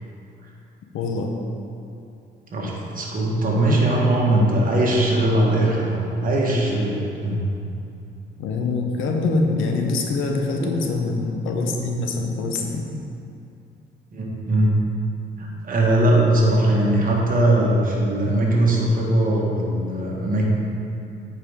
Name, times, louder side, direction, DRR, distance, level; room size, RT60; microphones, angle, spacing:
voice 1, 0.9-1.3 8.4-12.9, left 3 dB, 90° left, 2 dB, 0.9 m, -24 dB
voice 2, 2.5-7.4 10.6-10.7 14.1-14.8 15.4-20.5, right 1 dB, 45° right, -3 dB, 1.7 m, -20 dB
8.9 x 4.8 x 3.6 m, 2.6 s
cardioid pair, 90°, 20 cm